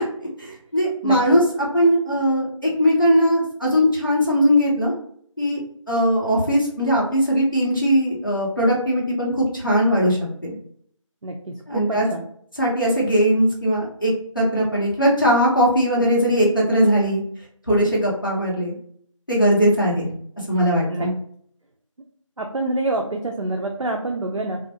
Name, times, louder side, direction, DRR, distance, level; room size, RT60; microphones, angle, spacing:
voice 1, 0.2-1.4 1.7-4.9 5.4-5.6 5.9-10.5 11.7-12.1 12.6-17.2 17.7-18.8 19.3-20.1 20.5-21.1, equal, 40° left, -5 dB, 0.8 m, -19 dB
voice 2, 11.2-12.2 20.9-21.1 22.4-24.6, right 2 dB, 75° right, 2 dB, 0.4 m, -27 dB
2.3 x 2.0 x 2.7 m, 0.62 s
figure-of-eight pair, 175°, 17 cm